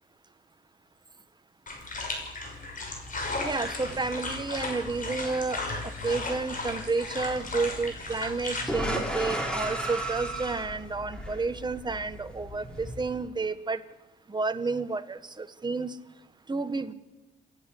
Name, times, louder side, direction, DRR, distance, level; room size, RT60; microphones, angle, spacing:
sound 1, 1.7-8.6, left 2 dB, 40° left, 6.3 m, -35 dB
sound 2, 2.7-13.2, right 1 dB, 5° left, 4.5 m, -37 dB
voice 1, 3.4-5.6 6.0-13.8 14.3-15.9 16.5-16.9, right 3 dB, 20° right, 11 dB, 1.4 m, -31 dB
29.0 x 11.5 x 8.5 m, 1.0 s
cardioid pair, 90°, 20 cm